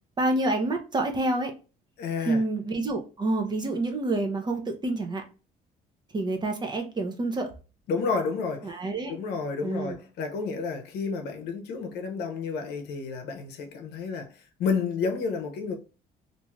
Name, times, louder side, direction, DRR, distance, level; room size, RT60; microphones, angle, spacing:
voice 1, 0.2-1.5 2.3-5.2 6.1-7.5 8.6-9.1 9.6-10.0, right 2 dB, 25° right, 0.6 m, -28 dB
voice 2, 2.0-2.4 7.9-8.8 9.1-15.8, left 5 dB, 75° left, 0.7 m, -31 dB
2.6 x 2.4 x 3.0 m
cardioid pair, 110°, 17 cm